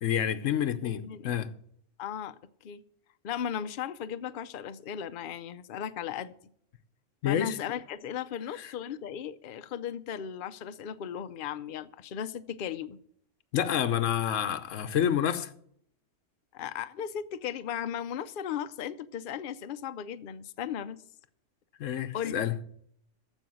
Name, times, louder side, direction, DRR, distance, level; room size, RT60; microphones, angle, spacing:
voice 1, 0.0-1.5 7.2-7.6 8.6-8.7 13.5-15.5 21.8-22.6, left 9 dB, 90° left, 1.2 m, -28 dB
voice 2, 0.8-1.4 2.0-2.4 2.6-2.8 3.2-6.3 7.2-13.0 16.5-21.0 22.1-22.4, left 9 dB, 55° left, 0.7 m, -36 dB
14.5 x 5.4 x 7.8 m
omnidirectional pair, 1.3 m